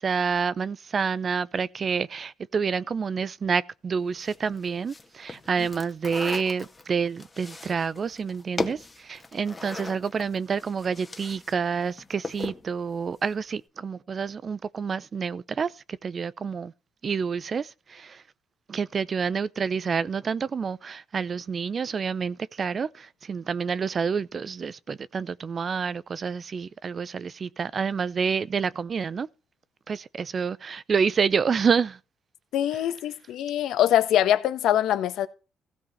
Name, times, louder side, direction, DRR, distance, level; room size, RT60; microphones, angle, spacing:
voice 1, 0.0-15.7 16.0-16.7 17.0-18.2 18.7-29.3 29.9-32.0, right 6 dB, 45° right, 0.7 m, -28 dB
sound 1, 4.2-11.5 11.8-12.7, left 3 dB, 20° left, 1.8 m, -37 dB
voice 2, 32.5-35.3, left 11 dB, 80° left, 1.4 m, -23 dB
15.5 x 5.5 x 5.6 m
cardioid pair, 90°, 0 cm